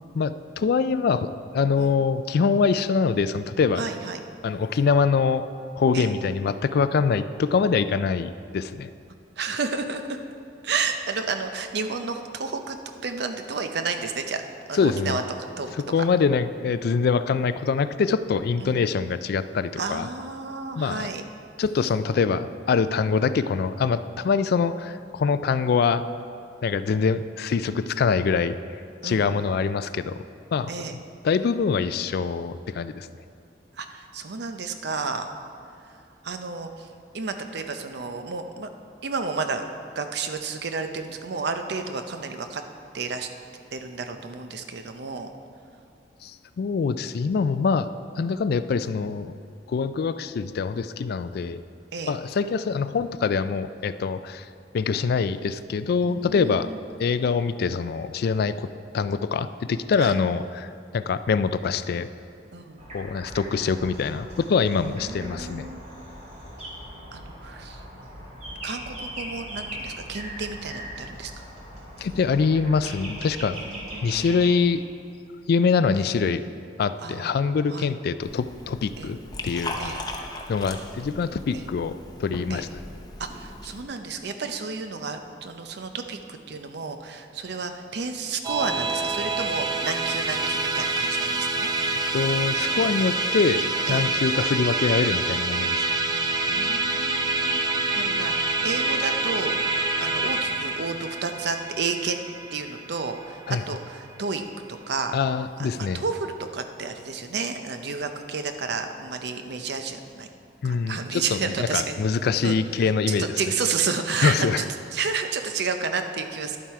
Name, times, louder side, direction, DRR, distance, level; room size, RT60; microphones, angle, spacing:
voice 1, 0.0-3.8 4.4-5.5 5.7-8.9 14.7-15.2 15.7-20.1 20.8-21.1 21.6-26.0 26.6-28.6 29.0-30.2 30.5-31.0 31.2-33.1 46.2-47.9 48.2-49.3 49.7-51.6 52.1-54.5 54.7-56.7 57.0-58.7 58.9-62.1 62.9-65.7 72.0-73.6 74.0-74.8 75.5-76.4 76.8-79.2 79.4-79.8 80.5-82.7 92.1-93.6 93.9-95.8 103.5-103.6 105.1-106.0 110.6-113.3 114.2-114.6, left 5 dB, 60° left, 13 dB, 0.3 m, -24 dB
voice 2, 3.8-4.2 5.9-6.1 9.4-10.0 10.6-14.4 14.7-15.2 15.6-15.8 18.6-18.8 19.8-21.2 29.0-29.3 30.7-31.0 33.8-35.3 36.2-36.9 37.1-38.7 39.0-39.6 39.9-42.6 42.9-43.3 43.7-45.3 51.9-52.1 56.0-56.8 60.0-60.2 62.5-62.8 64.8-65.8 67.1-67.8 68.6-71.3 73.5-74.5 77.0-77.3 77.7-77.9 79.0-79.1 79.8-80.0 81.5-81.6 82.5-82.7 83.2-91.7 93.9-94.1 96.5-99.5 100.0-102.2 102.5-104.4 104.7-105.2 105.6-110.3 110.6-112.0 112.4-112.6 113.1-114.6 114.9-116.6, right 4 dB, 65° right, 7 dB, 0.6 m, -31 dB
sound 1, 62.8-74.5, equal, 40° right, 2.3 m, -39 dB
Liquid, 78.2-83.8, left 2 dB, 25° left, 0.7 m, -38 dB
Musical instrument, 88.4-104.0, right 3 dB, 20° right, 0.6 m, -26 dB
10.5 x 7.4 x 4.7 m, 2.4 s
head